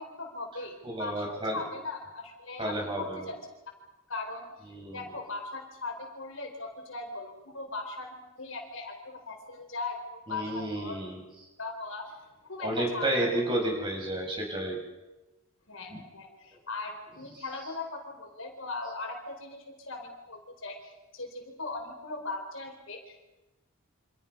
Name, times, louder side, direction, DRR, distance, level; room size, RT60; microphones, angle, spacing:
voice 1, 0.0-3.4 4.1-11.0 11.6-13.3 15.7-23.3, left 3 dB, 65° left, 2 dB, 4.5 m, -39 dB
voice 2, 0.8-1.6 2.6-3.2 4.7-5.0 10.3-11.2 12.6-14.8 15.9-16.0, right 1 dB, 20° right, 0 dB, 6.3 m, -31 dB
29.0 x 27.0 x 5.5 m, 1.1 s
head